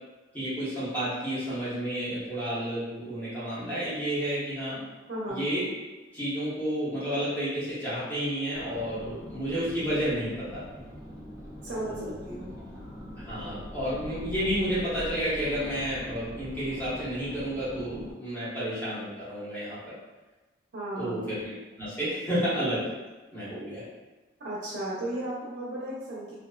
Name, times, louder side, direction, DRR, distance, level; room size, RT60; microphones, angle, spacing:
voice 1, 0.3-4.8 5.3-5.7 6.1-10.6 11.8-12.1 13.2-19.9 21.0-22.8 23.3-23.8, equal, 10° left, -12 dB, 1.0 m, -31 dB
voice 2, 5.1-5.5 11.6-12.5 20.7-21.3 24.4-26.3, right 1 dB, 60° right, -8 dB, 0.6 m, -35 dB
sound 1, 8.5-18.1, equal, 15° right, 0.4 m, -43 dB
2.4 x 2.3 x 2.3 m, 1.2 s
head